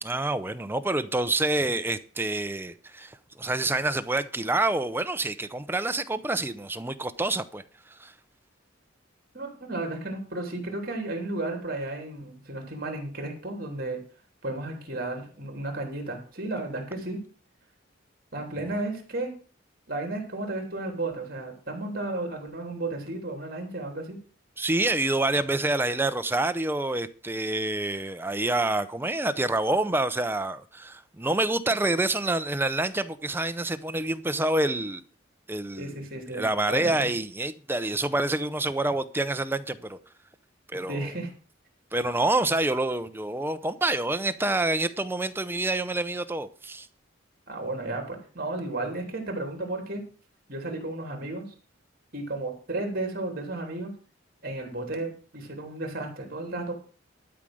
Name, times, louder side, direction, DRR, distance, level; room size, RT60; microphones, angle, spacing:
voice 1, 0.0-8.1 18.6-18.8 24.6-35.0 35.5-36.0 36.3-40.0 40.7-41.1 41.9-46.9, right 2 dB, 10° right, 0.7 m, -27 dB
voice 2, 9.3-14.0 14.4-17.2 18.3-19.3 19.9-24.2 35.8-36.4 36.7-36.9 40.9-41.3 47.5-50.0 50.5-51.5 52.1-53.9 54.4-56.7, right 2 dB, 50° right, 3.2 m, -33 dB
12.5 x 5.0 x 7.7 m
head